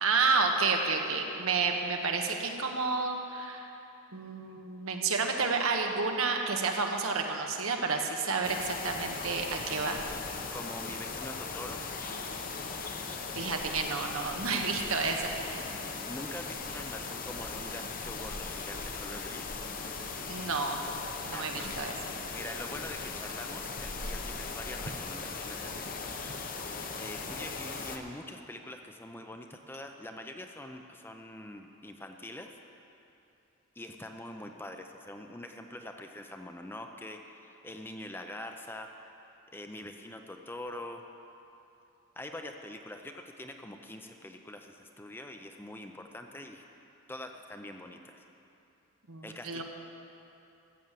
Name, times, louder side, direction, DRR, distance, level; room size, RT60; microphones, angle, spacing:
voice 1, 0.0-3.7 4.1-10.0 13.3-15.7 20.3-20.8 21.3-21.9 49.1-49.6, right 4 dB, 80° right, 3 dB, 1.3 m, -30 dB
sound 1, 8.4-28.0, left 4 dB, 40° left, 0.8 m, -38 dB
voice 2, 10.5-11.9 16.0-19.6 21.3-32.6 33.8-41.0 42.2-46.6 47.1-48.2 49.2-49.6, left 1 dB, 10° left, 4 dB, 0.5 m, -44 dB
14.5 x 8.0 x 7.5 m, 2.9 s
head